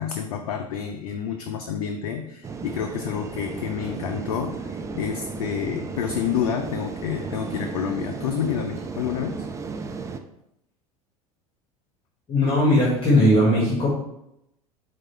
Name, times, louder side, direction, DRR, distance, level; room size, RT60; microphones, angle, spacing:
voice 1, 0.0-9.5, left 8 dB, 65° left, 5 dB, 0.4 m, -29 dB
sound 1, 2.4-10.2, right 4 dB, 15° right, 0.3 m, -34 dB
voice 2, 12.3-13.9, left 1 dB, 25° left, -5 dB, 1.4 m, -18 dB
4.7 x 2.4 x 4.2 m, 0.81 s
figure-of-eight pair, 75°, 19 cm